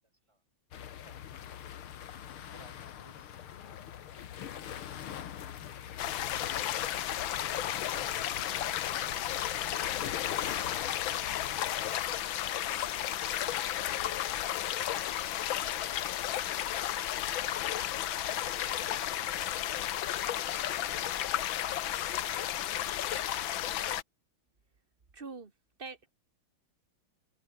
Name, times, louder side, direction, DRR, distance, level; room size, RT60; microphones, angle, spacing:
sound 1, 0.7-11.9, left 10 dB, 90° left, 2.2 m, -43 dB
voice 1, 0.7-1.2 1.7-4.2 6.7-9.0 9.3-13.1 14.1-14.3 14.8-19.1 22.7-22.8 23.1-23.8, right 1 dB, 15° right, 6.8 m, -62 dB
sound 2, 6.0-24.0, left 12 dB, 75° left, 1.7 m, -33 dB
voice 2, 25.1-25.5 25.8-26.1, right 4 dB, 30° right, 1.7 m, -43 dB
open air
omnidirectional pair, 2.3 m